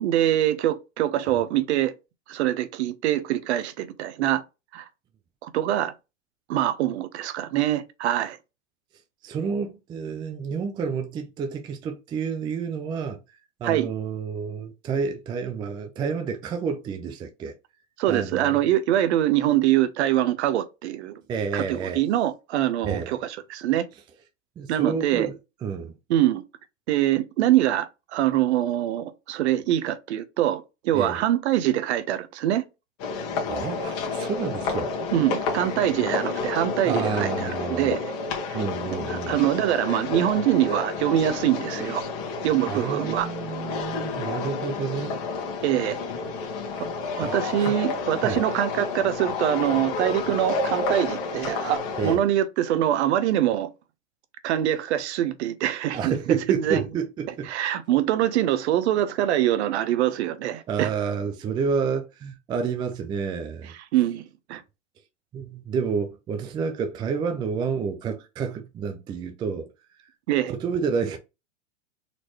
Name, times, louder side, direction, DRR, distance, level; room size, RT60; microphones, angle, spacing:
voice 1, 0.0-1.9 2.3-4.4 4.7-4.9 5.4-5.9 6.5-8.4 13.6-13.9 18.0-21.1 21.5-23.9 24.7-25.3 26.1-26.4 26.9-32.6 35.1-38.0 38.5-38.6 39.1-42.0 42.4-43.3 45.6-46.0 47.2-53.7 54.4-56.2 56.5-56.8 57.5-60.9 63.9-64.6 70.3-70.5, right 12 dB, 60° right, 0.8 m, -24 dB
voice 2, 9.2-13.2 13.6-17.5 18.1-18.6 21.3-22.0 22.8-23.1 24.6-25.3 25.6-25.9 30.9-31.2 33.5-35.0 36.8-37.9 38.5-39.4 42.7-45.2 46.7-46.8 47.2-47.7 48.2-48.4 52.0-52.2 55.9-57.5 60.7-63.7 65.3-69.7 70.5-71.2, right 6 dB, 15° right, 0.4 m, -29 dB
sound 1, 33.0-52.2, left 4 dB, 35° left, 1.4 m, -30 dB
4.2 x 3.0 x 2.9 m
hypercardioid pair, 130°, 38 cm